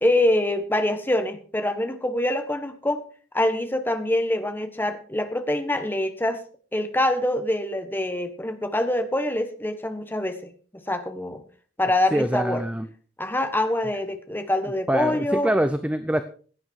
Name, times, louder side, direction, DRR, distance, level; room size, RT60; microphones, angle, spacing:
voice 1, 0.0-3.0 3.3-6.4 6.7-10.4 10.9-11.4 11.8-12.6 13.2-15.5, left 1 dB, 10° left, 8 dB, 1.3 m, -25 dB
voice 2, 12.1-12.9 14.9-16.2, right 1 dB, 5° right, 11 dB, 0.6 m, -24 dB
16.5 x 9.2 x 4.7 m, 0.42 s
head